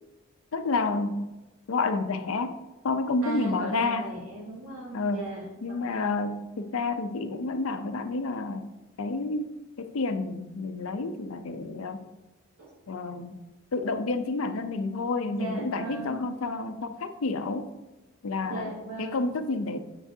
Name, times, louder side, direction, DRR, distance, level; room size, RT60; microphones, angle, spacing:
voice 1, 0.5-1.3 1.7-2.6 2.8-4.1 4.9-5.3 5.6-8.7 9.0-9.5 9.8-12.0 12.9-13.4 13.7-17.7 18.2-18.7 19.0-19.8, left 3 dB, 75° left, 9 dB, 0.5 m, -29 dB
voice 2, 3.2-6.3 12.6-12.7 15.3-16.2 18.4-19.4, right 2 dB, 75° right, -3 dB, 2.3 m, -37 dB
7.7 x 5.9 x 2.7 m, 1.1 s
head